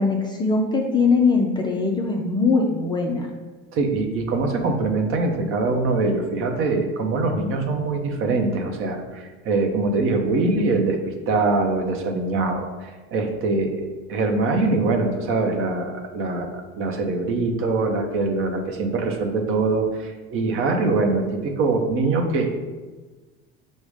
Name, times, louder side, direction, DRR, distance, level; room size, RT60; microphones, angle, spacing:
voice 1, 0.0-3.3, left 4 dB, 15° left, 0 dB, 0.3 m, -21 dB
voice 2, 3.7-13.8 14.1-22.6, right 3 dB, 45° right, 4 dB, 0.7 m, -23 dB
4.9 x 2.1 x 4.8 m, 1.3 s
supercardioid pair, 120°, 30 cm